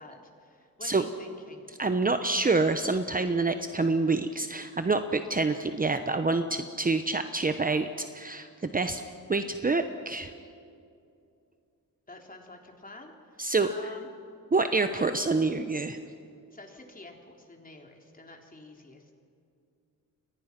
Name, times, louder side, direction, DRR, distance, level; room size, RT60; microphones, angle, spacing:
voice 1, 0.0-1.6 12.1-14.1 14.9-15.1 16.5-19.1, left 2 dB, 25° left, 2 dB, 3.6 m, -48 dB
voice 2, 1.8-7.9 8.1-9.0 9.3-10.3 13.4-13.7 14.5-16.0, right 3 dB, 25° right, 8 dB, 1.0 m, -27 dB
29.5 x 23.5 x 6.0 m, 2.5 s
wide cardioid pair, 115°, 35 cm